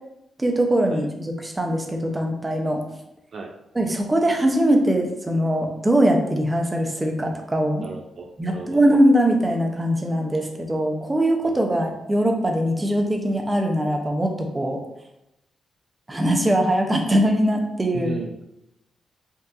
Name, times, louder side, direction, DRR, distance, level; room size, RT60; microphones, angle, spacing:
voice 1, 0.4-2.8 3.7-7.9 8.4-14.8 16.1-18.2, right 1 dB, 15° right, 2 dB, 0.7 m, -21 dB
voice 2, 7.8-8.8 17.9-18.4, right 3 dB, 50° right, 2 dB, 0.4 m, -35 dB
5.3 x 2.6 x 2.5 m, 0.86 s
cardioid pair, 100°, 0 cm